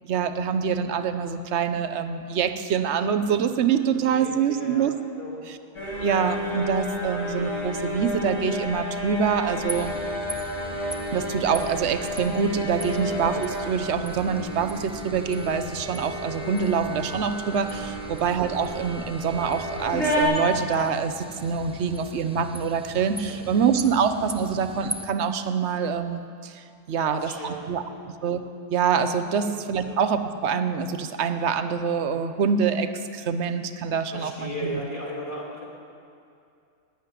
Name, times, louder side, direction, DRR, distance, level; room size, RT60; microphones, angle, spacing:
voice 1, 0.0-4.9 6.0-9.9 11.1-27.8 28.2-28.4 28.7-34.5, right 6 dB, 65° right, 10 dB, 1.0 m, -25 dB
voice 2, 4.1-4.8 5.2-5.4 18.1-18.2 23.5-23.7 27.0-28.0 29.3-30.0 34.1-35.6, equal, 40° left, -4 dB, 3.2 m, -36 dB
sound 1, 5.7-20.2, equal, 75° left, 3.5 m, -32 dB
sound 2, 9.7-25.1, right 1 dB, 5° right, 0.6 m, -41 dB
12.0 x 9.4 x 9.7 m, 2.5 s
omnidirectional pair, 1.3 m